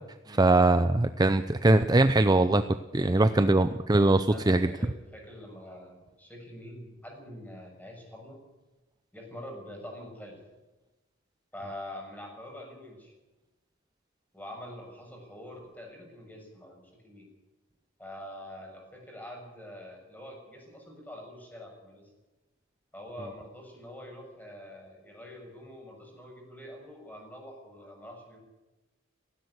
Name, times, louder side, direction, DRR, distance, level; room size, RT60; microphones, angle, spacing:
voice 1, 0.3-2.6 2.9-4.7, right 2 dB, 20° right, 10 dB, 0.6 m, -22 dB
voice 2, 3.0-3.7 4.3-8.4 9.1-10.4 11.5-13.1 14.3-17.3 18.0-22.1 22.9-28.4, left 1 dB, 10° left, 1 dB, 6.5 m, -45 dB
17.0 x 16.5 x 9.7 m, 1.1 s
head